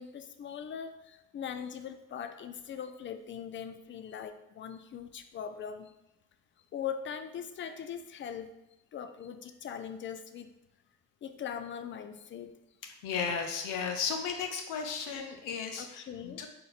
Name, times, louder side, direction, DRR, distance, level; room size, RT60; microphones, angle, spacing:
voice 1, 0.0-6.0 6.7-8.5 8.9-10.5 11.2-12.6 15.8-16.5, left 8 dB, 35° left, 8 dB, 0.5 m, -41 dB
voice 2, 13.0-16.5, left 6 dB, 75° left, 4 dB, 0.6 m, -34 dB
4.2 x 2.5 x 4.1 m, 0.94 s
supercardioid pair, 80°, 32 cm